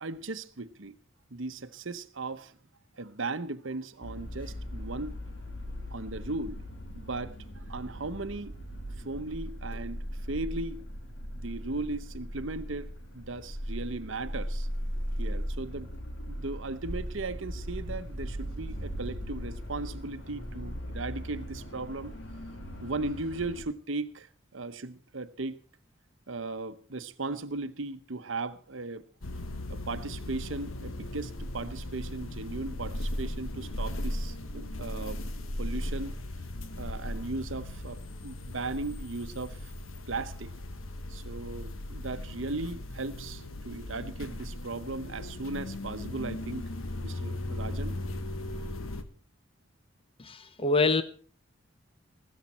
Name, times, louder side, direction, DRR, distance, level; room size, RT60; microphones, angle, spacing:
voice 1, 0.0-0.9 1.3-2.6 3.0-5.2 5.9-6.6 6.9-7.4 7.7-8.5 9.0-10.8 11.4-14.7 15.2-15.9 16.3-22.1 22.8-25.6 26.3-29.0 29.7-35.2 35.6-36.2 36.8-39.6 40.1-40.5 41.1-46.6 47.0-48.0, right 3 dB, 70° right, 0.9 m, -37 dB
sound 1, 4.0-23.6, equal, 65° left, 3.3 m, -38 dB
sound 2, 29.2-49.0, left 1 dB, 90° left, 1.3 m, -37 dB
voice 2, 50.2-51.0, left 3 dB, 25° left, 0.8 m, -25 dB
16.0 x 13.5 x 4.3 m
head